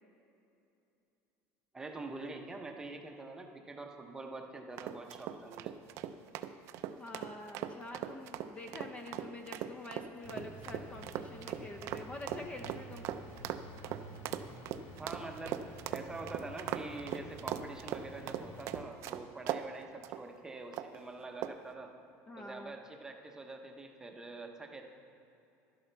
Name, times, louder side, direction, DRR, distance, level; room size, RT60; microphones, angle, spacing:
voice 1, 1.7-5.7 15.0-15.6 15.9-21.9 22.4-24.8, right 3 dB, 10° right, 3 dB, 0.8 m, -45 dB
sound 1, 4.8-19.7 20.0-20.2 20.7-21.0 21.4-21.7, right 11 dB, 50° right, 0.5 m, -39 dB
voice 2, 7.0-13.1 22.3-22.7, left 2 dB, 20° left, 5 dB, 0.6 m, -46 dB
sound 2, 10.2-18.8, equal, 45° left, 1.8 m, -50 dB
12.0 x 10.5 x 4.5 m, 2.7 s
cardioid pair, 160°, 6 cm